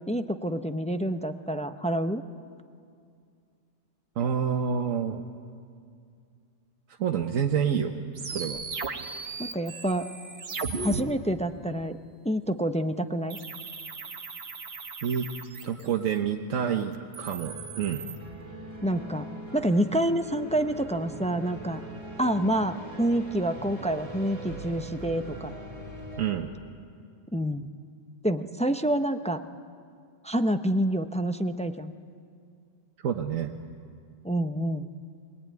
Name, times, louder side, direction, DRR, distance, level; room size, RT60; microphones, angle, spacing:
voice 1, 0.0-2.2 9.4-10.1 10.8-12.0 12.2-13.4 18.8-19.3 19.5-21.8 22.2-25.5 27.3-27.7 28.2-29.4 30.2-31.9 34.2-34.9, right 1 dB, 10° left, 8 dB, 0.4 m, -27 dB
voice 2, 4.2-5.2 7.0-8.0 8.3-8.6 15.0-15.3 15.6-18.0 26.2-26.5 33.0-33.5, right 8 dB, 85° right, 3 dB, 1.3 m, -28 dB
sound 1, 8.2-11.0 13.3-16.1 16.9-18.2, right 4 dB, 55° right, 1.4 m, -37 dB
sound 2, 17.3-26.3, right 1 dB, 25° right, 3.4 m, -42 dB
23.5 x 19.5 x 9.4 m, 2.3 s
omnidirectional pair, 1.3 m